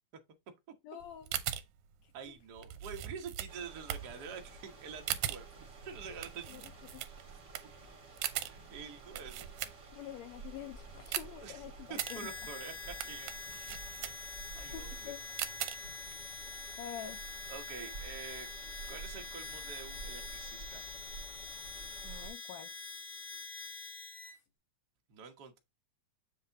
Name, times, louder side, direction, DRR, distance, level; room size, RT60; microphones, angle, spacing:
voice 1, 0.8-1.3 6.5-6.6 6.9-7.0 9.9-12.3 14.7-15.2 16.8-17.2 22.0-22.7, left 11 dB, 80° left, 1.6 m, -46 dB
sound 1, 1.0-10.2 10.5-16.1, right 12 dB, 75° right, 2.1 m, -41 dB
voice 2, 2.1-7.4 8.4-9.5 11.1-11.6 11.9-13.3 14.0-15.1 17.5-18.5 18.9-20.8 25.1-25.6, right 6 dB, 60° right, 1.0 m, -47 dB
sound 2, 3.5-22.3, right 4 dB, 35° right, 2.5 m, -51 dB
Harmonica, 11.9-24.4, left 4 dB, 50° left, 1.7 m, -45 dB
7.4 x 4.1 x 3.5 m
omnidirectional pair, 3.5 m